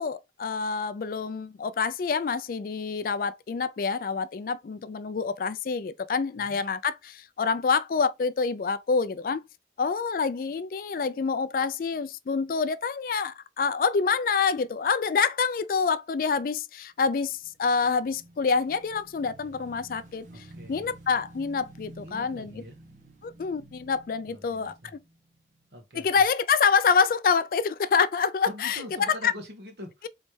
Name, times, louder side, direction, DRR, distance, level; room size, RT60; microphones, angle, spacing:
voice 1, 0.0-9.4 9.8-20.3 20.7-22.6 23.2-24.8 25.9-28.8 29.2-29.3, left 5 dB, 50° left, 0.3 m, -27 dB
Motorcycle / Engine, 17.2-25.7, right 2 dB, 45° right, 1.1 m, -51 dB
voice 2, 20.3-20.9 22.0-22.8 24.3-24.9 25.7-26.2 28.5-30.1, equal, 70° right, 1.5 m, -44 dB
4.1 x 3.2 x 3.2 m
head